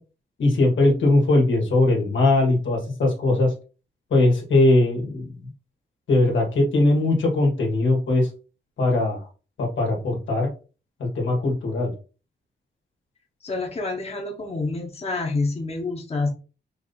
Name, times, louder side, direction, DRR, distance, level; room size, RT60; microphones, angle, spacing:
voice 1, 0.4-3.5 4.1-5.5 6.1-8.3 8.8-9.3 9.6-10.5 11.0-11.9, left 2 dB, 85° left, 0 dB, 1.7 m, -20 dB
voice 2, 13.4-16.3, left 3 dB, 30° left, 2 dB, 1.1 m, -27 dB
4.4 x 2.8 x 4.0 m, 0.35 s
cardioid pair, 95°, 19 cm